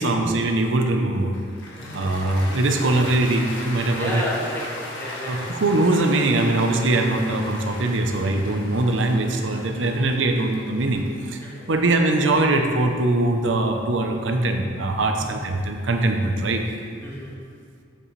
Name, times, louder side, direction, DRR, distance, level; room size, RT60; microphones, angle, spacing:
voice 1, 0.0-1.4 1.9-4.2 5.3-11.4 11.7-16.6, right 2 dB, 80° right, 4 dB, 0.7 m, -22 dB
Cheering / Applause, 1.3-13.6, left 1 dB, 80° left, 1.6 m, -38 dB
voice 2, 1.8-2.2 4.0-5.9 9.6-9.7 11.4-11.7 15.1-15.3 17.0-17.3, left 1 dB, 10° left, -6 dB, 1.5 m, -33 dB
7.5 x 7.5 x 3.2 m, 2.2 s
head